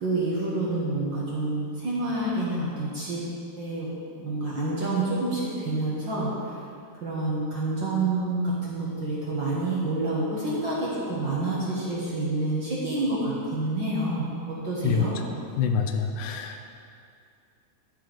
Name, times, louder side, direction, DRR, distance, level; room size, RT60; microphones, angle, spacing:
voice 1, 0.0-3.2 3.6-6.5 7.0-15.1, right 2 dB, 50° right, -7 dB, 1.6 m, -28 dB
voice 2, 15.6-16.6, left 7 dB, 90° left, 5 dB, 2.2 m, -26 dB
11.5 x 5.6 x 5.1 m, 2.4 s
omnidirectional pair, 3.6 m